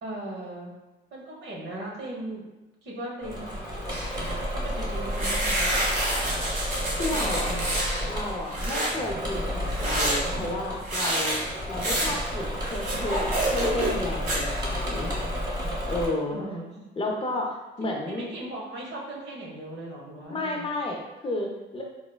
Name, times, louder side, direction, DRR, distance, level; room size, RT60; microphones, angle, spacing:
voice 1, 0.0-0.7 1.1-2.5 2.8-3.6 4.5-5.7 7.1-7.8 16.3-16.7 18.0-20.6, right 1 dB, 65° right, -3 dB, 0.9 m, -38 dB
Engine / Mechanisms, 3.2-16.1, equal, 20° right, 1.0 m, -31 dB
sound 1, 3.9-4.3 5.1-8.0 8.4-8.9 9.7-14.0 14.3-14.8, right 1 dB, 45° right, 1.1 m, -28 dB
voice 2, 7.0-7.5 8.1-11.4 11.7-15.1 15.9-16.4 17.0-18.3 20.3-21.8, left 2 dB, 30° left, 0 dB, 0.5 m, -32 dB
4.0 x 2.0 x 2.2 m, 1.0 s
cardioid pair, 90°, 20 cm